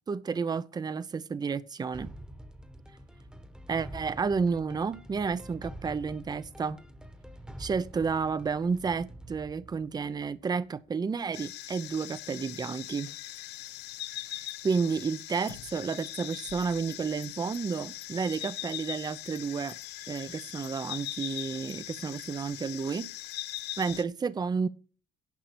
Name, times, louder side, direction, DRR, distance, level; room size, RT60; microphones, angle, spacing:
voice 1, 0.1-2.1 3.7-6.8 7.6-13.1 14.3-19.8 20.1-23.1 23.8-24.7, right 5 dB, 25° right, 0.6 m, -31 dB
sound 1, 1.9-10.8, equal, 5° right, 1.2 m, -47 dB
sound 2, 11.3-24.0, left 14 dB, 80° left, 0.7 m, -41 dB
10.5 x 5.8 x 6.7 m
cardioid pair, 110°, 17 cm